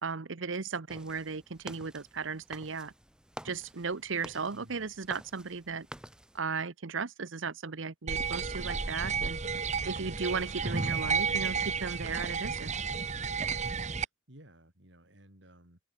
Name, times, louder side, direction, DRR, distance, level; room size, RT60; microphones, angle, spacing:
voice 1, 0.0-2.9 3.4-5.9 6.3-9.4 9.8-12.7, right 5 dB, 90° right, 1.0 m, -36 dB
sound 1, 0.9-6.4, right 1 dB, 5° right, 1.5 m, -49 dB
voice 2, 4.5-4.9 14.0-15.8, right 1 dB, 70° right, 5.8 m, -56 dB
sound 2, 8.1-14.1, right 5 dB, 35° right, 1.3 m, -32 dB
open air
head